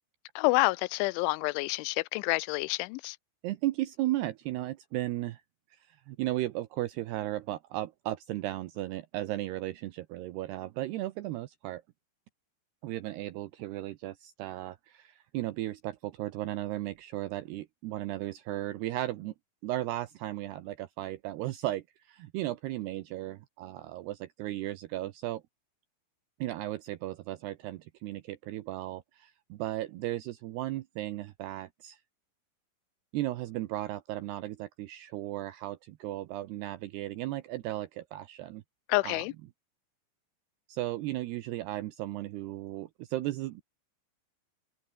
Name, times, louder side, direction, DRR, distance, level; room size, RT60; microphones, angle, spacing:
voice 1, 0.4-3.2 38.9-39.3, left 24 dB, 90° left, 3.0 m, -28 dB
voice 2, 3.4-5.4 5.7-11.8 12.8-19.3 19.6-25.4 26.4-32.0 33.1-38.6 39.0-39.3 40.7-43.6, right 15 dB, 75° right, 2.7 m, -35 dB
omnidirectional pair, 5.3 m